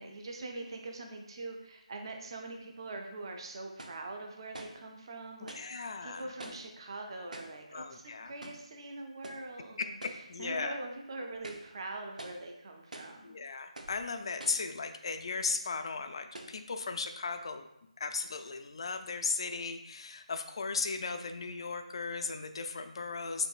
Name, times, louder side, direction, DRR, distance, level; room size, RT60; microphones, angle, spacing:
voice 1, 0.0-10.0 10.4-13.4, right 2 dB, 40° right, 3 dB, 0.6 m, -43 dB
sound 1, 2.8-2.9 3.8-4.1 4.5-4.8 5.5-5.7 6.4-6.8 7.3-7.6 8.4-8.7 9.2-9.5 10.0-10.3 10.7-10.8 11.3-11.7 12.2-12.5 12.9-13.2 13.8-14.0 14.4-14.7 15.4-15.5 16.3-16.6, right 2 dB, 80° right, 0.6 m, -47 dB
voice 2, 5.5-6.3 7.7-8.3 9.8-10.7 13.2-17.7 18.0-23.5, left 4 dB, 45° left, 7 dB, 0.4 m, -36 dB
5.2 x 3.7 x 2.4 m, 0.83 s
figure-of-eight pair, 160°, 4 cm